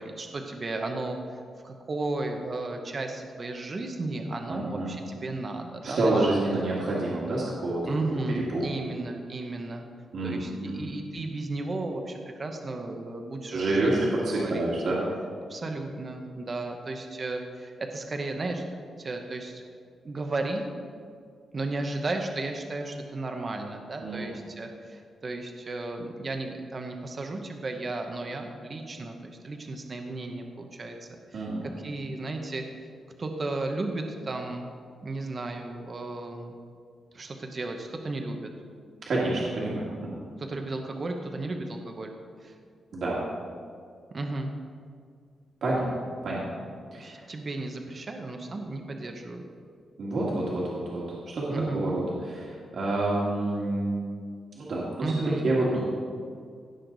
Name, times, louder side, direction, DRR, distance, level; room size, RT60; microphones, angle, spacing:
voice 1, 0.0-6.4 6.8-7.0 7.9-9.8 10.2-13.9 14.3-14.9 15.5-18.6 19.0-19.6 20.0-20.7 21.5-31.5 31.8-32.9 33.2-34.7 35.0-36.5 37.1-38.5 40.4-42.1 42.4-42.5 44.1-44.5 46.9-49.4 51.5-51.8 55.0-55.5, right 2 dB, 30° right, 4 dB, 0.9 m, -34 dB
voice 2, 4.5-4.9 5.8-7.9 8.5-8.6 10.1-10.9 13.5-15.0 24.0-24.3 31.3-31.7 39.1-40.2 42.9-43.2 45.6-45.9 46.2-46.5 46.9-47.3 50.0-53.9 54.6-55.8, right 2 dB, 55° right, -6 dB, 1.9 m, -28 dB
16.5 x 6.5 x 4.0 m, 2.2 s
wide cardioid pair, 150°, 0 cm